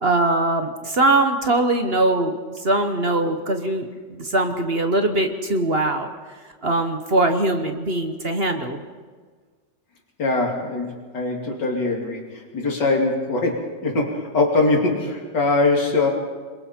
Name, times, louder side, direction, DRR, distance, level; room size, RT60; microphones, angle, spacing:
voice 1, 0.0-6.1 6.6-8.8, right 2 dB, 40° right, 6 dB, 1.2 m, -21 dB
voice 2, 10.2-16.1, left 2 dB, 85° left, 0 dB, 3.3 m, -22 dB
27.0 x 22.0 x 4.4 m, 1.5 s
omnidirectional pair, 1.8 m